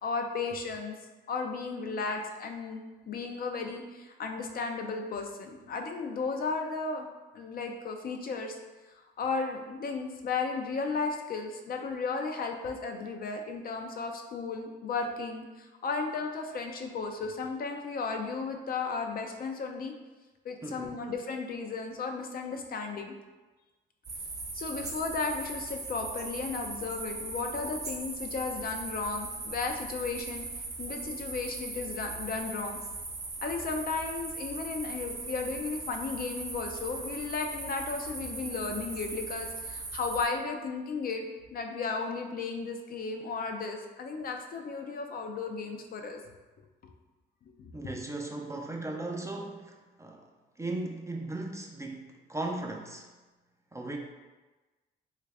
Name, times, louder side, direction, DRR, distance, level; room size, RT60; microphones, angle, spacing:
voice 1, 0.0-0.9 1.3-2.8 3.1-7.0 7.3-8.6 9.2-19.9 20.4-23.1 24.5-30.5 30.8-32.8 33.4-46.2 47.6-47.7, left 4 dB, 50° left, 4 dB, 0.4 m, -34 dB
voice 2, 20.6-21.0 47.7-50.3 50.6-53.1 53.7-54.0, right 2 dB, 15° right, 1 dB, 0.4 m, -37 dB
sound 1, 24.0-40.3, right 3 dB, 35° right, 0.7 m, -39 dB
3.3 x 2.4 x 3.3 m, 1.2 s
cardioid pair, 90°, 20 cm